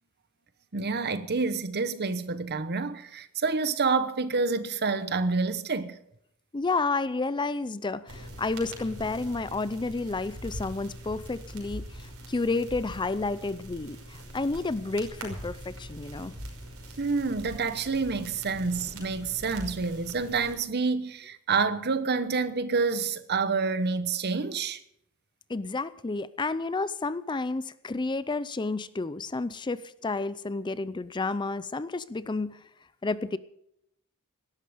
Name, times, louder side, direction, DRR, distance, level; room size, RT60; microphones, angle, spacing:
voice 1, 0.7-6.0 17.0-24.8, right 4 dB, 50° right, 1.0 m, -28 dB
voice 2, 6.5-16.3 25.5-32.6 33.0-33.4, left 3 dB, 20° left, 0.5 m, -31 dB
sound 1, 8.1-20.5, right 1 dB, 65° right, 5.6 m, -43 dB
17.5 x 13.0 x 5.0 m
head